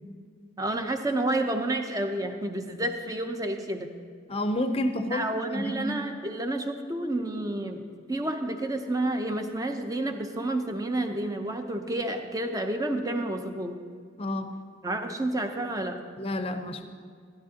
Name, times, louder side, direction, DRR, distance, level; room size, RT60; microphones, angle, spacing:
voice 1, 0.6-3.9 5.1-13.8 14.8-16.0, right 1 dB, 20° right, 5 dB, 0.6 m, -30 dB
voice 2, 4.3-5.2 5.5-5.9 14.2-14.5 16.2-16.9, left 1 dB, 30° left, 7 dB, 0.6 m, -29 dB
12.5 x 12.0 x 2.8 m, 2.1 s
head